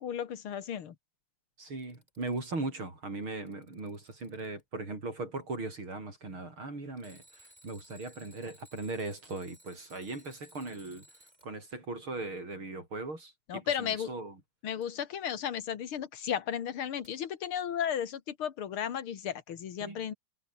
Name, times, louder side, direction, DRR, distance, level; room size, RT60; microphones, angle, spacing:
voice 1, 0.0-1.0 13.5-14.1 14.6-20.1, left 9 dB, 80° left, 2.4 m, -34 dB
Alarm, 1.6-2.6 3.2-4.6 7.0-11.5 14.8-14.9 17.0-17.1, right 1 dB, 20° right, 7.9 m, -59 dB
voice 2, 1.6-11.1 11.4-14.3 19.8-20.0, right 2 dB, 70° right, 8.1 m, -39 dB
omnidirectional pair, 2.3 m